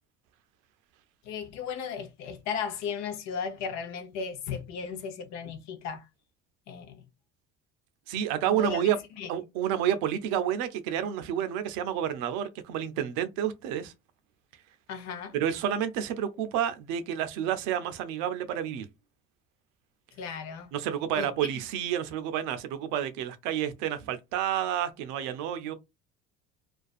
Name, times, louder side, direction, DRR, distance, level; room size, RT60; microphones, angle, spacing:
voice 1, 1.2-6.1 6.7-7.0 8.5-8.8 9.2-9.3 14.9-15.3 20.2-20.7 21.2-21.5, left 6 dB, 65° left, 0.8 m, -36 dB
voice 2, 8.1-9.0 9.3-13.9 15.3-18.9 20.7-25.7, right 10 dB, 75° right, 0.5 m, -29 dB
2.5 x 2.3 x 2.3 m
supercardioid pair, 80°, 29 cm